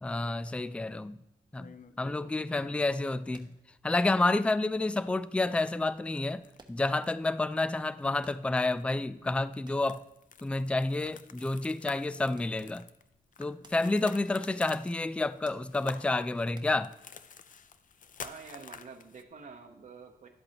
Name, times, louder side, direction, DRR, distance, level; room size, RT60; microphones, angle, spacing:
voice 1, 0.0-1.2 1.5-3.5 3.8-6.4 6.7-10.0 10.4-12.8 13.4-16.9, left 2 dB, 5° left, 0.3 m, -29 dB
sound 1, 1.6-2.9 4.0-4.8 5.1-5.2 5.6-7.2 7.5-7.7 8.0-8.4 8.7-8.8 9.3-19.2, left 6 dB, 55° left, 0.6 m, -50 dB
sound 2, 3.3-3.7 4.2-4.3 4.9-5.2 6.6-7.0 7.3-7.4 8.2-8.7 9.6-9.9 11.0-11.5 12.4-12.6 13.6-13.9 14.2-14.3 15.4-15.8 16.6-16.8 18.2-18.7, right 3 dB, 25° right, 1.1 m, -58 dB
voice 2, 18.2-20.3, right 5 dB, 50° right, 0.9 m, -48 dB
11.5 x 7.9 x 2.9 m
cardioid pair, 90°, 16 cm